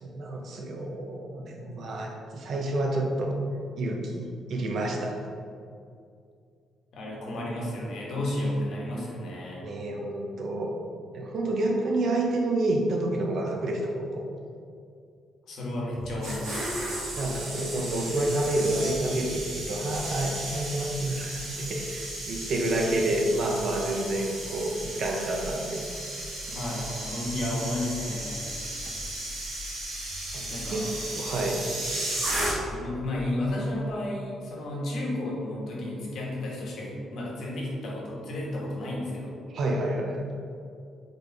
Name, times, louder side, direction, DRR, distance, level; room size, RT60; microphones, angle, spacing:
voice 1, 0.0-3.4 3.8-5.2 9.6-10.7 11.1-14.2 17.1-25.8 26.5-26.6 30.3-30.9 31.2-31.6 39.5-40.3, right 1 dB, 65° right, 1 dB, 0.6 m, -29 dB
voice 2, 6.9-9.7 15.5-16.7 26.5-28.4 30.5-30.8 32.7-39.4, left 1 dB, 70° left, -4 dB, 1.1 m, -32 dB
sound 1, 16.0-32.9 33.2-33.5, right 1 dB, 80° right, 1.3 m, -34 dB
4.1 x 3.3 x 3.4 m, 2.4 s
cardioid pair, 90°, 0 cm